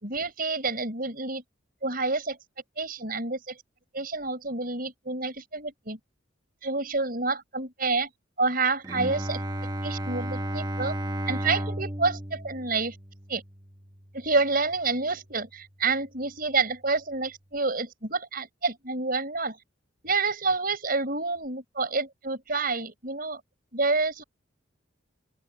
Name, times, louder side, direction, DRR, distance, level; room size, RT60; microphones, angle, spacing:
voice 1, 0.0-1.4 1.8-2.4 2.8-3.6 3.9-6.0 6.6-8.1 8.4-9.4 9.8-11.0 11.3-13.0 13.3-13.4 14.1-19.6 20.0-23.4 23.7-24.2, right 3 dB, 45° right, 5.5 m, -28 dB
Bowed string instrument, 8.8-14.6, right 1 dB, 20° right, 1.4 m, -34 dB
open air
head